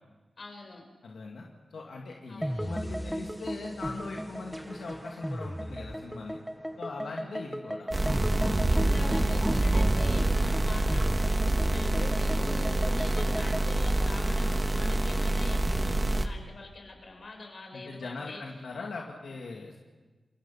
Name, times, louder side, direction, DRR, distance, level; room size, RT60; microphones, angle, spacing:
voice 1, 0.4-0.8 2.3-2.8 7.1-7.4 8.7-18.4, left 2 dB, 55° left, 3 dB, 5.6 m, -44 dB
voice 2, 1.0-1.5 1.7-6.4 6.8-9.6 17.7-19.8, left 3 dB, 85° left, 0 dB, 2.3 m, -41 dB
sound 1, 2.4-13.7, equal, ahead, 1.0 m, -37 dB
sound 2, 7.9-16.3, right 1 dB, 25° right, 1.6 m, -26 dB
29.0 x 22.0 x 5.7 m, 1.3 s
wide cardioid pair, 90°, 0 cm